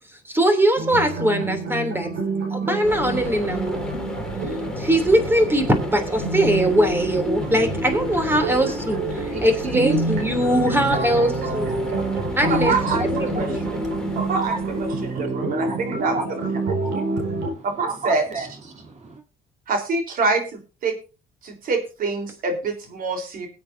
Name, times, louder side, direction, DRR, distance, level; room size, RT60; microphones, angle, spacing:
voice 1, 0.2-2.1 2.5-3.9 4.8-11.8 12.4-12.7 13.0-13.6, right 1 dB, 15° right, 3.0 m, -21 dB
sound 1, 0.8-17.5, right 2 dB, 90° right, 5.2 m, -28 dB
sound 2, 2.8-15.2, left 2 dB, 5° left, 2.9 m, -33 dB
voice 2, 9.3-19.2, right 4 dB, 45° right, 3.3 m, -33 dB
voice 3, 12.5-13.0 13.4-13.5 14.3-14.5 15.0-16.2 16.7-16.8 17.6-18.2 19.7-20.4 20.8-21.0 21.4-23.5, right 4 dB, 60° right, 3.8 m, -25 dB
21.5 x 8.5 x 2.7 m
cardioid pair, 110°, 17 cm